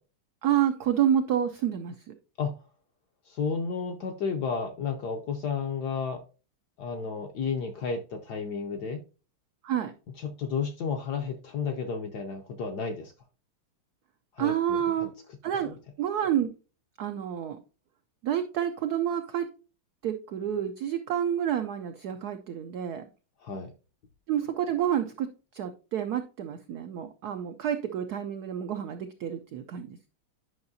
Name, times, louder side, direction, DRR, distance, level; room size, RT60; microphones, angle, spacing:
voice 1, 0.4-2.1 9.6-9.9 14.4-15.1 15.4-16.5 17.0-17.6 18.2-19.5 20.0-23.0 24.3-30.1, right 10 dB, 90° right, 0.8 m, -29 dB
voice 2, 3.3-6.2 6.8-9.0 10.2-13.1 14.3-15.1 23.4-23.7, left 5 dB, 70° left, 1.0 m, -32 dB
9.5 x 5.6 x 2.7 m
omnidirectional pair, 2.3 m